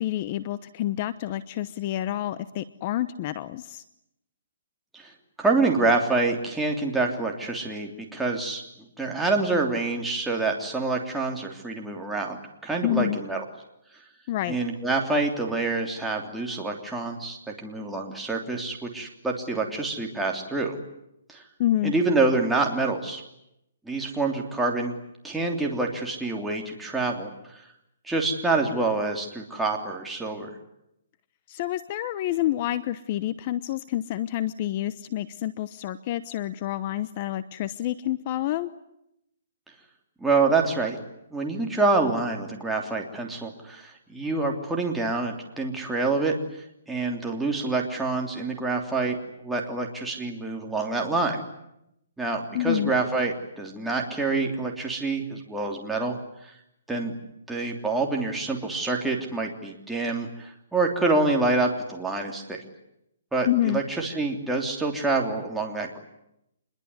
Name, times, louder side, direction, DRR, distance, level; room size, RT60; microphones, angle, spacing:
voice 1, 0.0-3.8 12.8-13.2 14.3-14.6 21.6-21.9 31.5-38.7 52.5-52.9 63.4-63.8, left 13 dB, 35° left, 15 dB, 1.0 m, -28 dB
voice 2, 5.4-8.6 9.0-13.4 14.5-20.8 21.3-21.4 21.8-23.2 23.8-25.0 25.2-27.6 28.0-30.5 40.2-41.0 41.3-46.3 46.9-51.4 52.2-56.2 56.4-56.5 56.9-57.1 57.5-62.6 63.3-66.0, right 3 dB, 5° right, 0 dB, 3.2 m, -26 dB
27.0 x 22.0 x 9.7 m, 0.82 s
hypercardioid pair, 160°, 0 cm